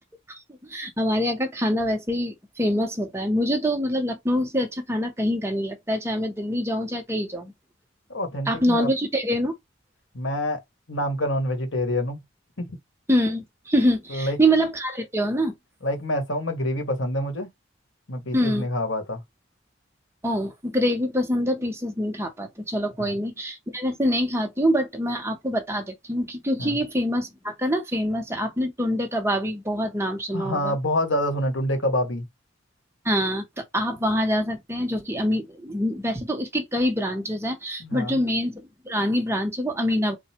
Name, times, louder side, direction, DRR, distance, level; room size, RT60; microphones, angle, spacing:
voice 1, 0.7-7.5 8.5-9.5 13.1-15.5 18.3-18.7 20.2-30.8 33.0-40.2, equal, 15° right, 1.0 m, -25 dB
voice 2, 8.1-8.9 10.1-10.6 10.9-12.2 12.6-12.8 14.1-14.4 15.8-17.5 18.1-19.2 23.0-23.1 26.6-26.8 30.3-32.3 37.8-38.2, left 1 dB, 80° left, 1.6 m, -26 dB
3.9 x 2.4 x 4.4 m
head